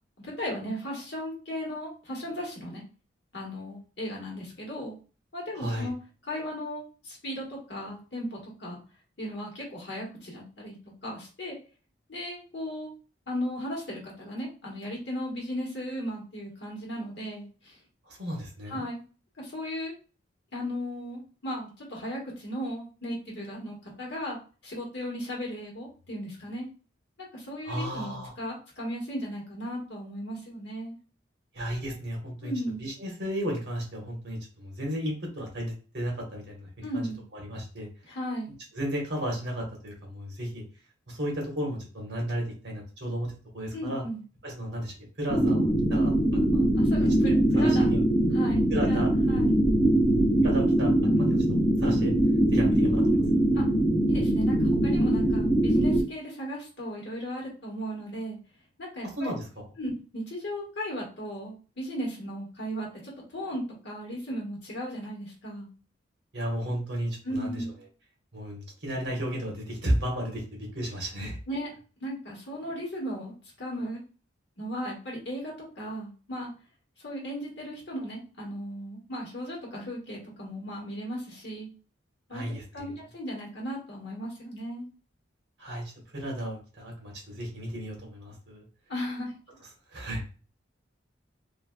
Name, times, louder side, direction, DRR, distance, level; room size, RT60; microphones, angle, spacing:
voice 1, 0.2-2.8 3.3-4.9 5.3-5.9 6.3-8.8 9.2-10.8 11.0-11.5 12.1-12.9 13.3-17.8 18.7-19.0 19.4-19.9 20.5-24.4 24.6-26.7 27.3-30.9 32.4-32.9 36.8-37.2 38.1-38.5 43.7-44.2 46.7-47.9 48.3-49.5 53.5-53.7 54.1-58.4 58.8-59.3 59.8-65.7 67.2-67.7 71.5-71.7 72.0-74.0 74.6-76.5 77.0-81.7 82.3-82.4 82.7-84.8 88.9-89.3, equal, 60° left, -3 dB, 1.4 m, -36 dB
voice 2, 5.5-5.9 18.1-18.8 27.6-28.3 31.5-32.5 32.8-36.7 36.9-37.9 38.7-40.6 41.1-44.0 44.4-46.1 46.5-46.6 47.0-47.1 47.5-48.0 48.7-49.1 50.4-51.4 51.8-52.1 52.5-53.2 59.2-59.6 66.3-67.6 68.3-70.4 70.7-71.4 82.3-82.9 85.6-85.8 86.1-88.6 89.9-90.2, equal, 60° right, -1 dB, 1.3 m, -33 dB
sound 1, 45.3-56.0, right 1 dB, 90° left, 1.2 m, -22 dB
3.3 x 2.6 x 2.2 m, 0.36 s
head